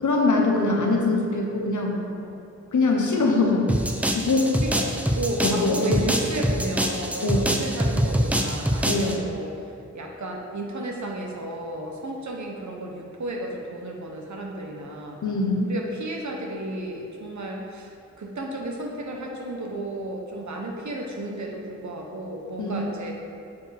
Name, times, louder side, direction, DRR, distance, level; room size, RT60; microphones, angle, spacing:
voice 1, 0.0-2.0 2.7-3.7 4.1-4.5 5.4-6.0 7.2-7.4 8.9-9.2 15.2-15.7 22.6-22.8, left 3 dB, 90° left, 0 dB, 0.8 m, -22 dB
sound 1, 3.7-9.2, equal, 5° right, 0.5 m, -25 dB
voice 2, 5.2-9.5 9.9-15.2 15.6-17.9 18.2-23.1, right 1 dB, 75° right, 0 dB, 0.8 m, -33 dB
6.7 x 4.5 x 3.4 m, 2.5 s
wide cardioid pair, 65°, 29 cm